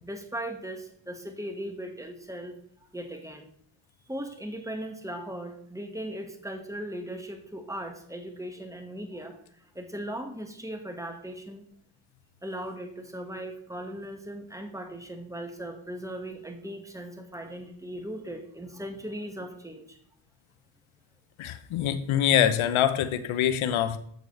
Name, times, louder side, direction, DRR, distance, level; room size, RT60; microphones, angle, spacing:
voice 1, 0.0-2.6 2.9-3.5 4.1-9.4 9.7-11.7 12.4-20.0, right 1 dB, 5° right, 4 dB, 1.6 m, -38 dB
voice 2, 21.4-24.0, left 10 dB, 70° left, 12 dB, 0.8 m, -24 dB
7.9 x 6.6 x 3.3 m, 0.63 s
supercardioid pair, 55°, 50 cm